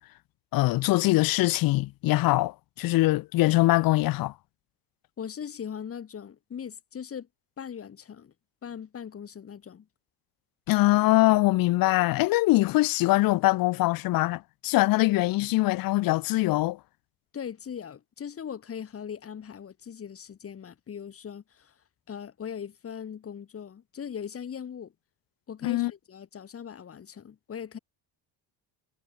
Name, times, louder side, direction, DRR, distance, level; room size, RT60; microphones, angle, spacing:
voice 1, 0.5-4.3 10.7-16.8 25.6-25.9, left 19 dB, 50° left, 0.5 m, -23 dB
voice 2, 5.2-7.3 7.6-8.3 8.6-9.9 17.3-21.7 22.1-24.9 25.5-27.8, left 8 dB, 30° left, 3.9 m, -39 dB
cardioid pair, 165°, 44 cm